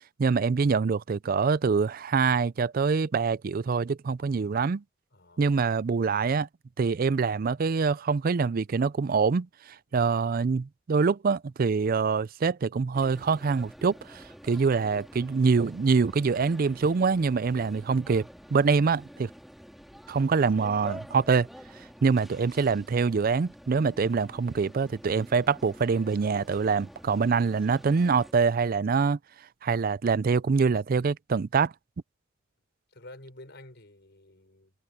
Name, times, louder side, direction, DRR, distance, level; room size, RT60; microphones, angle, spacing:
voice 1, 0.2-4.8 5.4-6.5 6.8-9.5 9.9-19.3 20.1-21.5 22.0-29.2 29.6-31.7, right 5 dB, 45° right, 0.4 m, -25 dB
voice 2, 5.1-5.6 9.9-10.1 22.3-22.4 32.9-34.7, left 1 dB, 55° left, 5.4 m, -50 dB
sound 1, 12.9-28.3, equal, ahead, 3.7 m, -48 dB
head